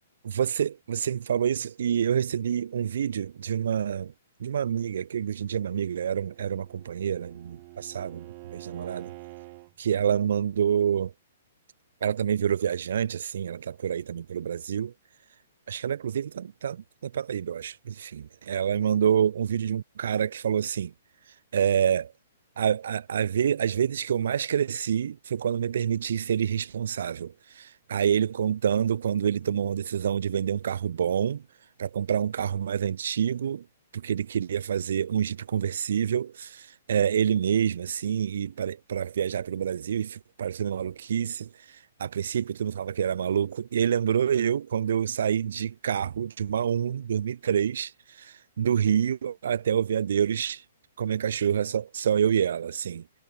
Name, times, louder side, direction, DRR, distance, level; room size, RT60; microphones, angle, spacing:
voice 1, 0.2-4.1 4.4-9.1 9.8-11.1 12.0-14.9 15.7-20.9 21.5-22.1 22.6-31.4 31.8-33.7 33.9-50.6 51.0-53.0, right 8 dB, 60° right, 3.5 m, -27 dB
Bowed string instrument, 6.1-9.7, right 25 dB, 40° right, 7.0 m, -46 dB
figure-of-eight pair, 115°, 0 cm